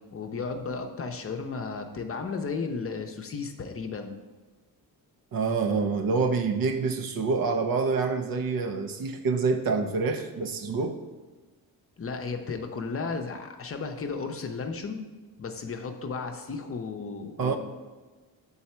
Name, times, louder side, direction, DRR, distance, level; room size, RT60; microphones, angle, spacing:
voice 1, 0.1-4.1 12.0-15.0 15.4-17.6, left 4 dB, 40° left, 5 dB, 0.6 m, -34 dB
voice 2, 5.3-11.0 17.4-17.6, right 4 dB, 70° right, 6 dB, 0.7 m, -27 dB
6.9 x 4.0 x 4.3 m, 1.3 s
cardioid pair, 115°, 37 cm